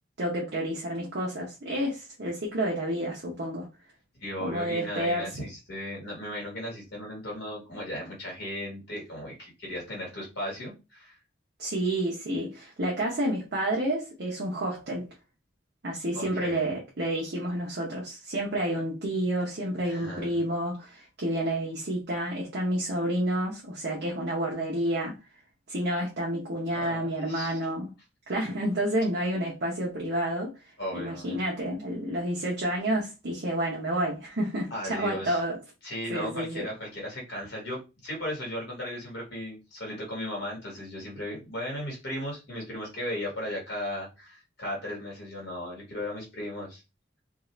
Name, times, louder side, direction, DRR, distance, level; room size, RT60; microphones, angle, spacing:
voice 1, 0.2-3.7 4.4-5.5 11.6-15.1 15.8-25.1 25.7-27.9 28.3-30.5 30.9-35.6 36.1-36.7, right 1 dB, 55° right, 0.8 m, -30 dB
voice 2, 4.2-11.2 16.1-16.7 19.8-20.4 26.7-27.6 30.8-31.4 34.7-35.4 35.8-46.8, left 1 dB, 55° left, 1.4 m, -36 dB
2.6 x 2.4 x 3.1 m
head